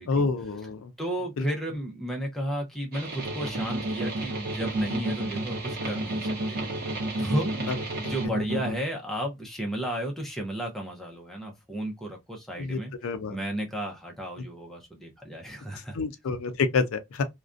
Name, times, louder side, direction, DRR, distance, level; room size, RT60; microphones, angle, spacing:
voice 1, 0.1-0.9 1.4-1.5 12.6-13.4 15.9-17.2, left 4 dB, 80° left, 0.4 m, -28 dB
voice 2, 1.0-6.6 7.2-7.5 8.0-12.9 13.3-16.0, right 1 dB, ahead, 0.5 m, -33 dB
sound 1, 2.9-8.3, right 3 dB, 45° right, 0.9 m, -38 dB
sound 2, 3.2-8.7, right 1 dB, 70° right, 0.5 m, -30 dB
2.4 x 2.2 x 2.4 m
head